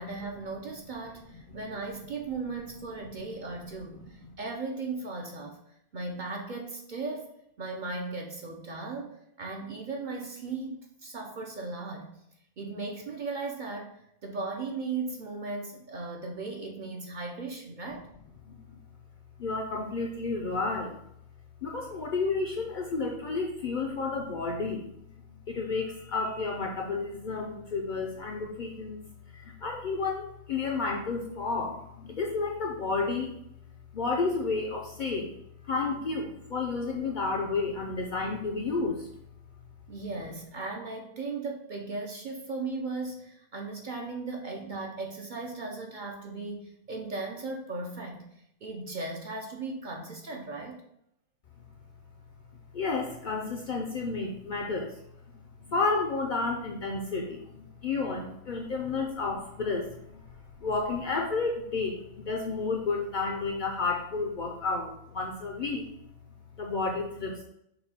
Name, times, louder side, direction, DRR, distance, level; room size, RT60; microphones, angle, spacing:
voice 1, 0.0-5.6 5.9-7.3 7.6-12.1 12.6-13.9 14.2-18.1 39.9-48.2 48.6-50.8, right 3 dB, 50° right, 1 dB, 0.6 m, -37 dB
voice 2, 19.4-21.0 21.6-24.8 25.5-29.0 29.3-33.3 33.9-35.3 35.6-39.1 52.7-54.9 55.7-60.2 60.6-62.0 62.3-65.8 66.6-67.4, left 4 dB, 60° left, 1 dB, 0.5 m, -31 dB
5.4 x 2.2 x 4.1 m, 0.77 s
omnidirectional pair, 1.2 m